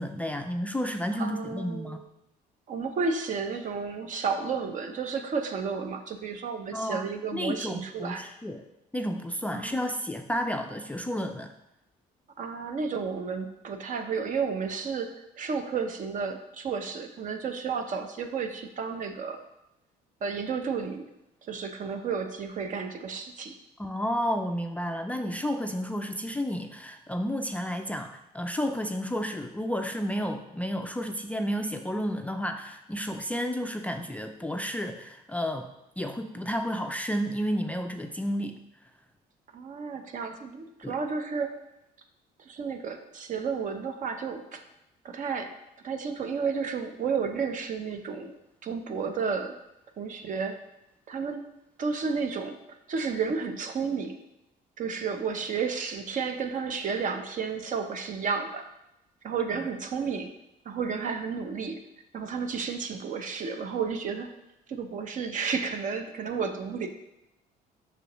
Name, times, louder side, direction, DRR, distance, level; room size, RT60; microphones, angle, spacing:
voice 1, 0.0-2.0 6.7-7.1 7.3-8.6 8.9-11.5 23.8-35.7 36.0-38.6 40.8-41.0, equal, 10° left, 5 dB, 0.4 m, -31 dB
voice 2, 1.1-2.1 2.7-8.3 9.5-9.9 12.4-19.4 20.2-21.1 21.4-23.5 39.5-41.6 42.5-44.6 45.0-45.5 45.8-48.3 48.6-49.5 50.0-50.6 51.1-51.4 51.8-52.6 52.9-54.2 54.8-58.6 59.2-60.3 60.6-61.8 62.1-64.3 64.7-66.9, right 5 dB, 50° right, 6 dB, 0.8 m, -32 dB
6.8 x 6.1 x 3.0 m, 0.89 s
cardioid pair, 110°, 17 cm